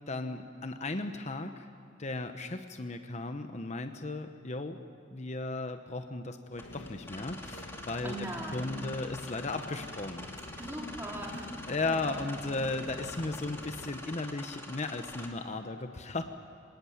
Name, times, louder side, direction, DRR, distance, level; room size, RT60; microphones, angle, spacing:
voice 1, 0.1-1.7 2.0-4.8 5.1-8.3 8.5-10.6 11.7-16.2, left 2 dB, 35° left, 7 dB, 0.9 m, -36 dB
sound 1, 6.5-15.3, left 1 dB, 15° left, 2.3 m, -46 dB
sound 2, 6.6-13.9, left 1 dB, 70° left, 1.5 m, -47 dB
voice 2, 8.0-8.8 10.6-12.2, right 1 dB, 10° right, -1 dB, 3.5 m, -40 dB
25.5 x 18.5 x 9.3 m, 2.5 s
head